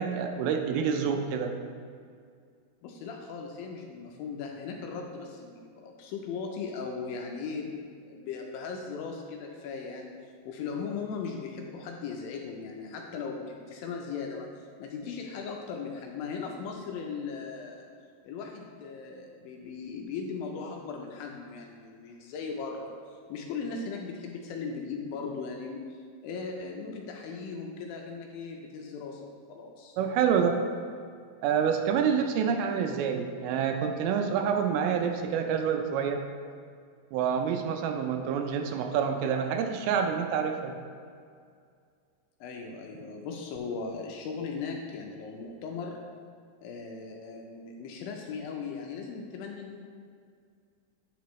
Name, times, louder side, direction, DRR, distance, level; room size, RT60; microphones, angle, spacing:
voice 1, 0.0-1.5 30.0-30.6 31.4-36.2 37.1-40.8, right 7 dB, 85° right, 5 dB, 2.4 m, -27 dB
voice 2, 2.8-10.1 10.5-17.9 18.2-30.0 42.4-46.0 46.6-49.8, left 5 dB, 80° left, 1 dB, 2.2 m, -38 dB
9.1 x 5.0 x 3.1 m, 2.2 s
omnidirectional pair, 4.4 m